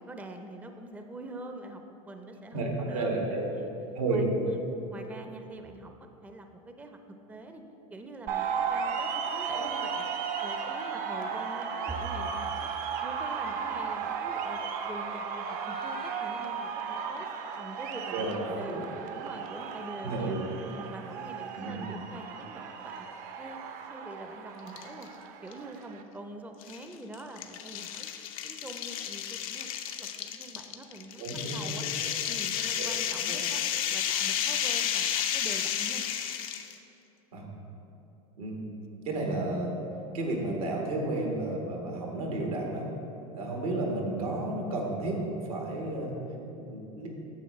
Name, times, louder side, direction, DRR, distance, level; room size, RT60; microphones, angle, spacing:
voice 1, 0.0-1.8 2.1-3.2 3.5-3.7 4.1-4.6 4.9-5.9 6.2-7.0 7.3-7.6 7.9-10.1 10.4-12.7 13.0-14.6 14.8-17.3 17.6-18.8 19.1-20.4 20.7-23.1 23.4-23.6 23.9-25.1 25.4-28.1 28.4-29.7 30.0-31.3 31.5-31.9 32.3-33.6 33.9-36.0, right 2 dB, 10° right, 5 dB, 0.5 m, -44 dB
voice 2, 2.5-3.5 3.9-4.3 9.5-9.7 18.1-18.8 20.0-20.4 21.6-21.9 31.2-32.1 32.7-32.8 37.3-37.5 38.4-39.7 40.1-42.8 43.3-45.2 45.5-46.1 46.6-47.1, right 2 dB, 85° right, 0 dB, 1.5 m, -32 dB
sound 1, 8.3-26.0, right 6 dB, 50° right, 0.7 m, -35 dB
sound 2, 24.7-25.1 25.5-25.6 26.6-36.7, left 9 dB, 75° left, 0.6 m, -32 dB
9.3 x 7.0 x 3.1 m, 3.0 s
hypercardioid pair, 95°, 18 cm